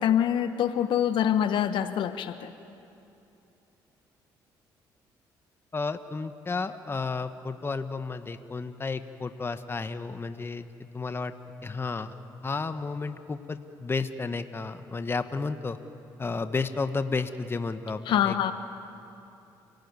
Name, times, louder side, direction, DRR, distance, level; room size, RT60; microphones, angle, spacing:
voice 1, 0.0-2.5 18.1-18.5, left 10 dB, 70° left, 10 dB, 1.1 m, -25 dB
voice 2, 5.7-10.7 10.9-11.3 11.6-12.1 12.4-15.8 16.2-18.4, left 4 dB, 25° left, 10 dB, 1.2 m, -32 dB
28.5 x 17.5 x 9.6 m, 2.8 s
cardioid pair, 80°, 9 cm